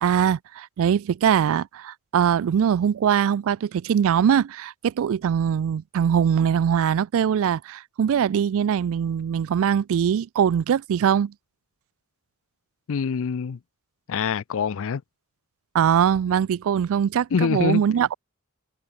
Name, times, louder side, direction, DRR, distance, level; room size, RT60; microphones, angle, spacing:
voice 1, 0.0-11.3 15.7-18.1, right 8 dB, 65° right, 0.3 m, -22 dB
voice 2, 12.9-13.6 14.1-15.0 17.3-17.8, left 6 dB, 65° left, 0.4 m, -25 dB
head